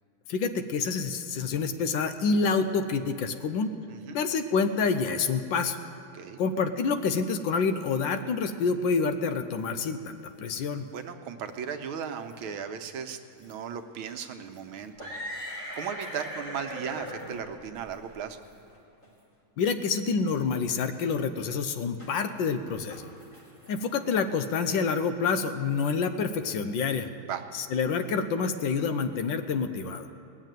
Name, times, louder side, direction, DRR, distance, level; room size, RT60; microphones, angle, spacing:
voice 1, 0.3-3.7 4.1-5.8 6.4-10.9 19.6-23.1 23.7-27.1 27.5-30.1, left 5 dB, 75° left, 9 dB, 1.4 m, -27 dB
sound 1, 9.6-9.7 10.1-10.3 10.9-11.1 11.5-11.6 12.1-12.4 13.4-13.5 14.1-14.2 14.5-18.8 19.0-19.1 19.9-20.0 22.0-22.5 22.7-24.8, equal, 35° left, 4.0 m, -41 dB
voice 2, 10.9-15.1 15.7-18.4 27.3-27.4, right 7 dB, 90° right, 7 dB, 1.7 m, -36 dB
19.0 x 7.4 x 9.1 m, 2.4 s
omnidirectional pair, 2.2 m